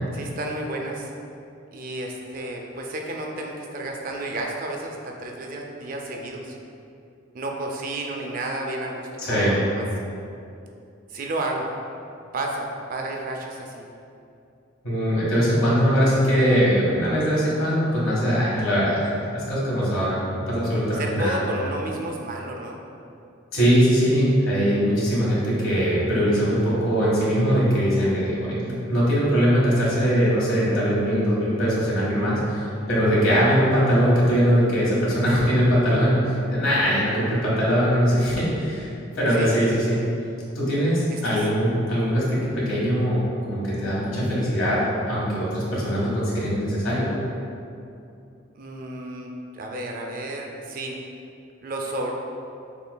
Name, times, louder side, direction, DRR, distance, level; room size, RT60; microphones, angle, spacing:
voice 1, 0.1-1.1 1.7-6.6 7.3-9.8 11.1-11.7 12.3-13.9 20.9-22.8 32.8-32.9 39.3-39.7 41.1-41.4 48.5-51.0 51.6-52.1, right 1 dB, 45° right, 1 dB, 0.4 m, -32 dB
voice 2, 9.2-9.6 14.8-21.5 23.5-38.9 39.1-40.0 40.5-44.8 45.1-47.1, equal, 90° left, -7 dB, 1.4 m, -21 dB
6.7 x 2.5 x 2.2 m, 2.6 s
head